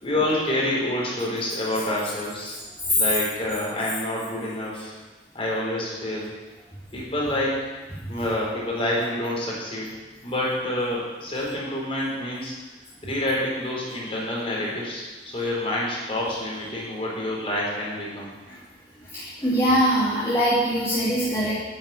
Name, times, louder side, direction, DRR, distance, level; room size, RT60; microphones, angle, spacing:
voice 1, 0.0-2.6 2.9-4.9 5.3-6.3 6.9-7.7 8.1-9.9 10.2-12.5 13.0-18.3, left 1 dB, 30° left, -5 dB, 4.3 m, -27 dB
voice 2, 19.1-21.5, equal, 15° left, -10 dB, 2.4 m, -22 dB
10.5 x 7.7 x 8.3 m, 1.2 s
head